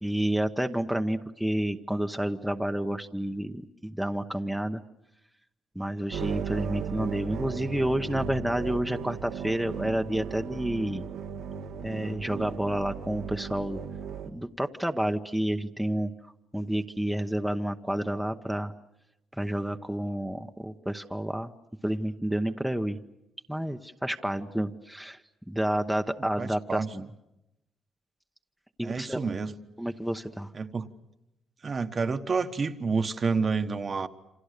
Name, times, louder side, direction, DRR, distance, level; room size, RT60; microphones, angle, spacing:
voice 1, 0.0-4.8 5.7-11.0 11.8-13.8 14.2-16.1 16.5-18.7 19.4-21.5 21.8-23.0 23.5-25.2 25.5-27.0 28.8-29.3 29.8-30.5, right 1 dB, 5° right, 1.0 m, -30 dB
sound 1, 6.1-14.3, right 7 dB, 85° right, 1.6 m, -36 dB
voice 2, 26.4-27.1 28.8-29.5 30.5-30.9 31.6-34.1, right 4 dB, 40° right, 1.3 m, -29 dB
28.5 x 26.0 x 6.7 m
cardioid pair, 90°, 0 cm